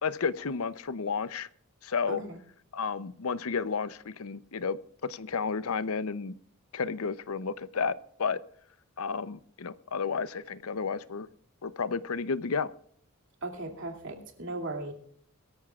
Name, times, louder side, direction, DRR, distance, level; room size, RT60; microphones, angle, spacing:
voice 1, 0.0-1.5 1.8-2.2 2.7-6.4 6.7-8.4 9.0-11.3 11.6-12.7, left 5 dB, 75° left, 16 dB, 0.7 m, -32 dB
voice 2, 2.1-2.4 13.4-14.9, right 2 dB, 60° right, 4 dB, 2.6 m, -37 dB
22.5 x 13.5 x 2.4 m, 0.62 s
head